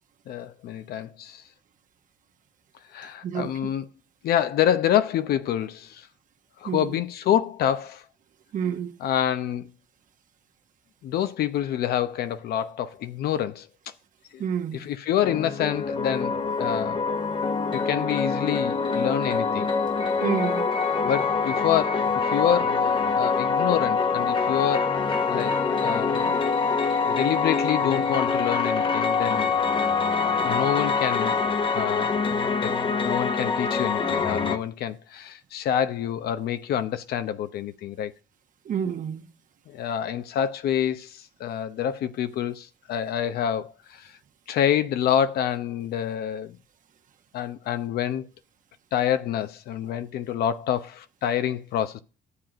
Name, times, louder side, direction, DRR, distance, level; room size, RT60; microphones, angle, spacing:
voice 1, 0.3-1.4 2.9-3.9 4.2-6.1 6.6-8.0 9.0-9.7 11.0-13.7 14.3-14.4 14.7-17.0 17.7-19.7 21.0-25.0 25.3-25.5 25.8-26.4 27.0-29.5 30.3-31.4 31.7-32.2 32.6-32.8 33.0-38.1 39.7-44.1 44.5-46.6 47.3-48.3 48.9-52.0, left 10 dB, 70° left, 0.8 m, -27 dB
voice 2, 3.2-3.7 6.6-6.9 8.5-8.9 14.4-14.8 20.2-20.7 38.6-39.2, right 8 dB, 50° right, 1.3 m, -29 dB
sound 1, 15.2-34.6, left 5 dB, 30° left, 1.0 m, -25 dB
11.5 x 7.7 x 5.0 m
cardioid pair, 110°, 17 cm